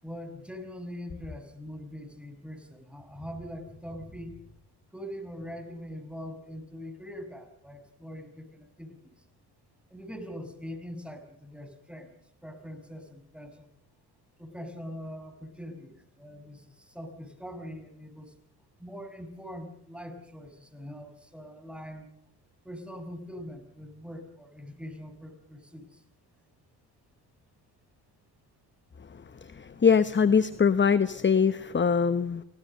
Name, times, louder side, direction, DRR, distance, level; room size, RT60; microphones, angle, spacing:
voice 1, 0.0-4.4 4.9-9.2 9.9-12.1 12.4-13.7 14.4-18.3 18.8-22.1 22.6-26.0, equal, ahead, 7 dB, 6.1 m, -42 dB
voice 2, 29.1-32.4, left 6 dB, 25° left, 13 dB, 1.0 m, -23 dB
28.5 x 18.0 x 6.7 m, 0.77 s
supercardioid pair, 60°, 44 cm